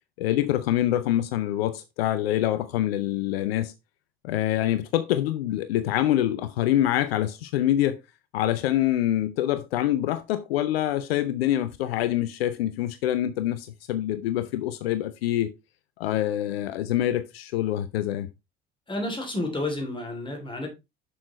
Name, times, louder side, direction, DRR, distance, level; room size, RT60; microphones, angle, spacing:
voice 1, 0.2-3.7 4.2-8.0 8.3-15.5 16.0-18.3, left 13 dB, 70° left, 0.6 m, -25 dB
voice 2, 18.9-20.7, left 2 dB, 15° left, 3.1 m, -30 dB
7.1 x 6.3 x 3.2 m
figure-of-eight pair, 60°, 31 cm